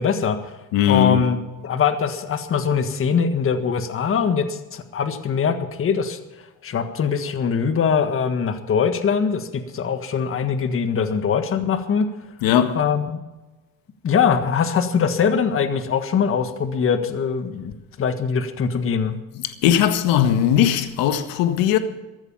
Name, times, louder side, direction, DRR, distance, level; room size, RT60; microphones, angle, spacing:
voice 1, 0.0-0.5 0.9-1.4 1.6-6.2 6.6-12.0 12.7-13.2 14.0-19.2, left 6 dB, 35° left, 1.7 m, -22 dB
voice 2, 0.7-1.2 12.4-12.8 19.4-21.8, left 10 dB, 65° left, 1.7 m, -18 dB
14.5 x 13.5 x 5.7 m
supercardioid pair, 95°, 37 cm